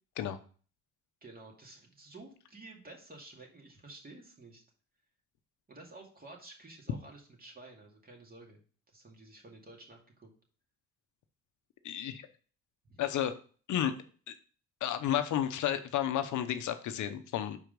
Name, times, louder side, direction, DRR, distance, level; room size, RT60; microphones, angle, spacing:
voice 1, 1.2-4.6 5.7-8.6 8.9-10.3 12.9-13.0, right 2 dB, 30° right, 1 dB, 2.2 m, -52 dB
voice 2, 11.8-12.3 13.0-13.4 13.7-13.9 14.3-14.4 14.8-17.6, left 11 dB, 75° left, 9 dB, 0.8 m, -32 dB
5.6 x 4.7 x 5.2 m, 0.41 s
cardioid pair, 90°, 30 cm